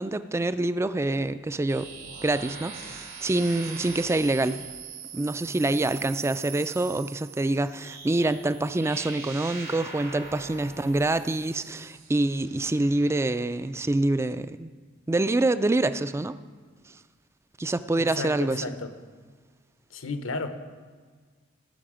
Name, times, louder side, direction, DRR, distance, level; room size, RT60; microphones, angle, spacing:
voice 1, 0.0-1.9 2.2-4.6 5.1-14.7 15.1-16.4 17.6-18.6, right 2 dB, 15° right, 13 dB, 0.3 m, -26 dB
sound 1, 1.7-13.3, right 5 dB, 85° right, 2.7 m, -42 dB
voice 2, 18.0-18.9 19.9-20.5, left 3 dB, 80° left, 8 dB, 0.9 m, -33 dB
18.0 x 6.9 x 5.0 m, 1.5 s
head